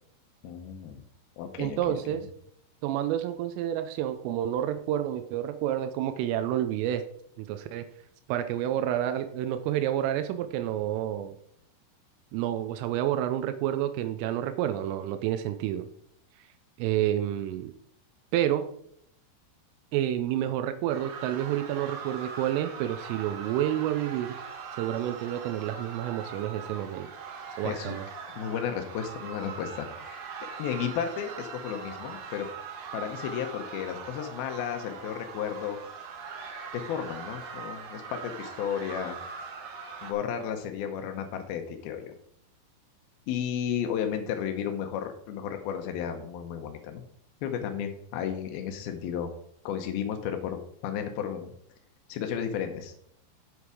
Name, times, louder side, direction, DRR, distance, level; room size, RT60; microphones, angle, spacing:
voice 1, 0.4-1.0 1.4-2.2 27.6-28.0 28.3-30.2 30.6-32.5 32.9-35.8 36.7-39.2 40.0-42.1 43.3-47.0 47.4-49.3 49.6-51.5 52.1-52.9, left 8 dB, 85° left, 5 dB, 2.1 m, -33 dB
voice 2, 1.6-2.2 2.8-7.0 7.4-7.9 8.3-11.3 12.3-15.9 16.8-17.7 18.3-18.7 19.9-24.3 24.7-27.1 27.6-28.1, right 11 dB, 90° right, 8 dB, 3.3 m, -29 dB
sound 1, 20.9-40.1, right 5 dB, 65° right, 2.8 m, -41 dB
8.3 x 7.9 x 4.8 m, 0.69 s
omnidirectional pair, 5.6 m